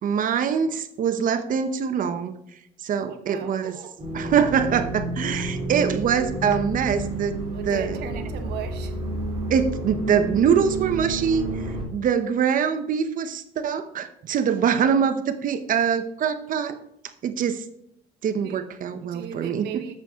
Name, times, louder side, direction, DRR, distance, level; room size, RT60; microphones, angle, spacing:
voice 1, 0.0-2.3 2.8-3.8 4.1-7.4 7.6-8.0 9.5-16.8 17.2-17.7 18.2-19.8, right 7 dB, 55° right, 10 dB, 0.9 m, -24 dB
voice 2, 3.0-3.9 7.5-8.9 18.4-18.6 19.1-19.9, right 9 dB, 75° right, 6 dB, 1.2 m, -37 dB
sound 1, 4.0-11.8, right 2 dB, 30° right, 3.2 m, -30 dB
8.0 x 7.1 x 3.7 m, 0.75 s
cardioid pair, 110°, 17 cm